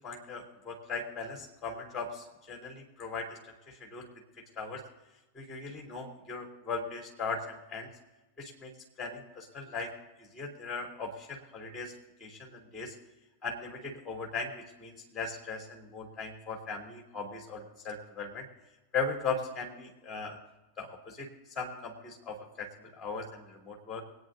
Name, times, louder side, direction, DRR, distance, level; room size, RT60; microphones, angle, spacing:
voice 1, 0.0-3.4 3.7-4.1 4.6-4.8 5.3-7.9 8.4-8.7 9.0-9.9 10.3-11.9 12.2-12.9 13.4-18.5 18.9-20.4 20.8-21.3 21.5-24.0, left 4 dB, 20° left, 0 dB, 3.3 m, -38 dB
24.5 x 9.6 x 2.6 m, 1.0 s
figure-of-eight pair, 90°, 0 cm